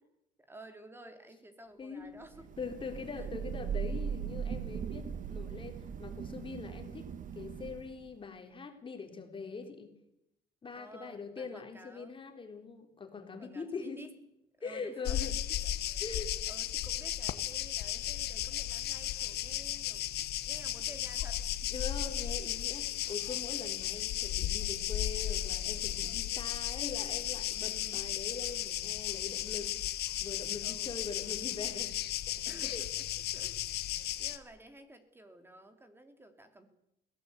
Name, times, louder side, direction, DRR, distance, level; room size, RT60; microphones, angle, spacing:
voice 1, 0.5-2.5 3.1-3.4 10.7-12.2 13.4-14.1 14.6-15.4 16.5-20.1 20.5-21.7 27.6-28.1 30.6-30.9 32.4-33.0 33.3-33.6 33.9-36.7, right 1 dB, 15° right, 8 dB, 3.1 m, -53 dB
voice 2, 1.8-2.2 2.6-7.0 7.3-9.9 10.6-14.1 14.6-15.4 16.0-16.3 21.7-31.9 32.3-32.8, left 4 dB, 30° left, 5 dB, 3.8 m, -43 dB
Thunder / Rain, 2.3-8.1, right 7 dB, 50° right, 1.3 m, -39 dB
sound 1, 15.1-34.4, left 13 dB, 70° left, 1.3 m, -35 dB
21.5 x 17.5 x 8.3 m, 0.81 s
cardioid pair, 110°, 17 cm